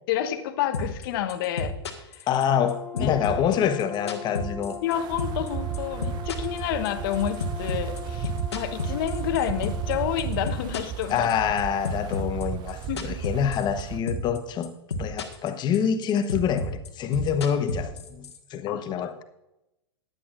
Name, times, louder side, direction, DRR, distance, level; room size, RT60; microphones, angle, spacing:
voice 1, 0.1-1.7 2.1-2.3 2.9-3.1 4.8-11.3 12.9-13.2 18.7-19.2, left 11 dB, 55° left, 1.2 m, -29 dB
sound 1, 0.7-1.0 1.3-2.7 3.0-4.9 5.2-5.5 5.7-9.9 10.2-11.6 11.8-13.8 14.1-14.4 14.6-15.5 15.7-18.4, left 2 dB, 80° left, 1.6 m, -31 dB
voice 2, 2.3-4.8 11.1-14.7 15.0-19.2, left 8 dB, 30° left, 1.1 m, -26 dB
Brass instrument, 2.5-10.3, left 5 dB, 10° left, 0.9 m, -40 dB
Wind, 4.9-14.0, right 11 dB, 30° right, 0.4 m, -35 dB
15.5 x 10.0 x 2.5 m
hypercardioid pair, 105°, 14 cm